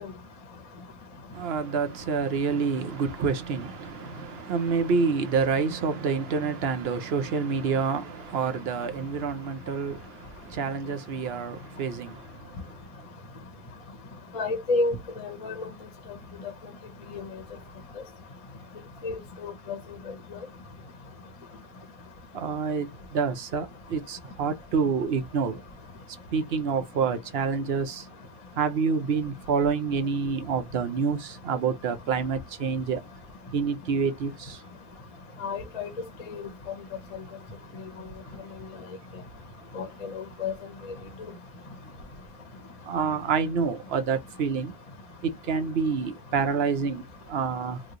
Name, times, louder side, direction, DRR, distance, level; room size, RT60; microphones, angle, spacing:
voice 1, 1.3-12.8 22.3-25.6 26.1-28.1 28.5-33.0 33.5-34.6 37.9-38.4 41.2-41.4 42.8-44.8 45.2-47.8, right 5 dB, 70° right, 0.9 m, -28 dB
voice 2, 14.3-15.7 17.1-17.2 19.0-19.8 35.4-35.9 36.3-36.4 39.8-39.9 40.1-40.5, left 3 dB, 40° left, 0.6 m, -30 dB
3.0 x 2.2 x 3.7 m
omnidirectional pair, 1.1 m